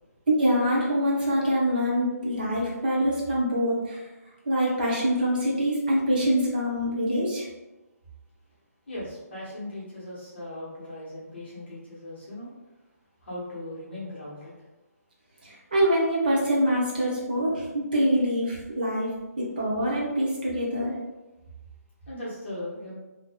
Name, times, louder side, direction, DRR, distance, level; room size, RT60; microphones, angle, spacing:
voice 1, 0.4-4.0 4.4-7.5 15.4-19.1 19.4-20.9, equal, 30° right, -5 dB, 0.8 m, -25 dB
voice 2, 8.9-12.5 13.2-14.5 22.1-22.9, left 1 dB, 40° left, -8 dB, 1.1 m, -38 dB
3.8 x 2.7 x 2.2 m, 1.1 s
hypercardioid pair, 175°, 9 cm